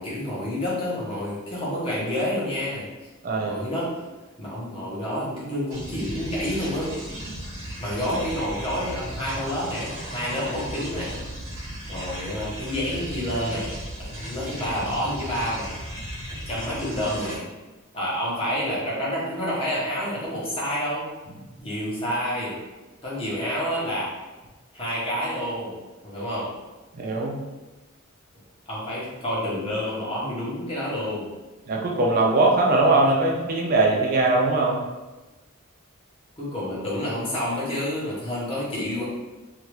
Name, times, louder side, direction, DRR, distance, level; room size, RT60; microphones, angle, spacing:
voice 1, 0.0-2.8 3.4-3.9 4.4-6.9 7.8-11.2 11.9-15.7 16.5-17.5 17.9-21.0 21.6-22.5 23.0-24.1 24.7-25.8 26.0-26.5 28.7-31.3 36.4-39.0, equal, 25° left, -7 dB, 1.0 m, -29 dB
voice 2, 3.2-3.6 26.9-27.4 31.7-34.8, right 2 dB, 45° right, 0 dB, 0.4 m, -21 dB
sound 1, 5.7-17.4, equal, 70° right, 0.8 m, -36 dB
2.8 x 2.4 x 3.1 m, 1.2 s
head